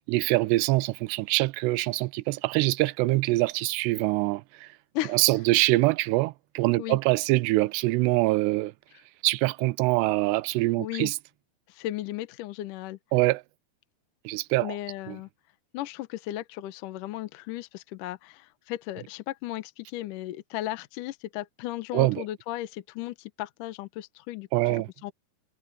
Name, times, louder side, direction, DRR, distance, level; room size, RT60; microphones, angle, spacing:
voice 1, 0.1-4.7 5.1-8.7 9.2-11.2 13.1-13.4 14.3-14.8 15.1-15.2 21.9-22.2 24.5-24.9, right 21 dB, 90° right, 2.8 m, -24 dB
voice 2, 10.8-11.1 11.7-13.0 14.6-15.3 15.7-24.8 25.0-25.1, left 15 dB, 70° left, 2.1 m, -35 dB
omnidirectional pair, 4.7 m